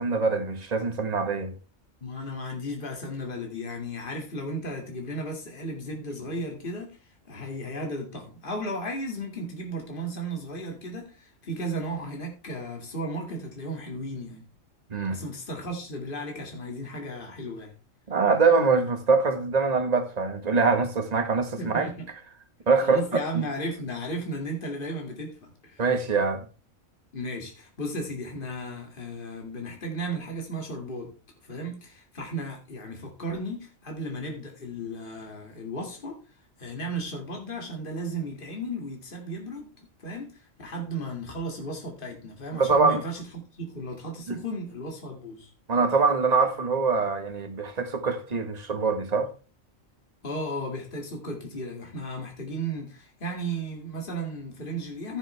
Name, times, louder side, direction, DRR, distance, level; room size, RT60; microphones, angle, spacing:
voice 1, 0.0-1.5 14.9-15.2 18.1-21.9 22.7-23.0 23.3-23.4 25.8-26.5 42.5-43.0 44.3-44.4 45.7-49.3, right 4 dB, 30° right, 1.4 m, -24 dB
voice 2, 2.0-7.0 7.3-14.4 15.1-17.7 21.6-22.1 22.8-25.9 27.1-31.1 31.4-36.2 36.6-45.5 50.2-55.2, right 1 dB, 40° left, 2.4 m, -35 dB
14.5 x 7.1 x 3.3 m
omnidirectional pair, 1.4 m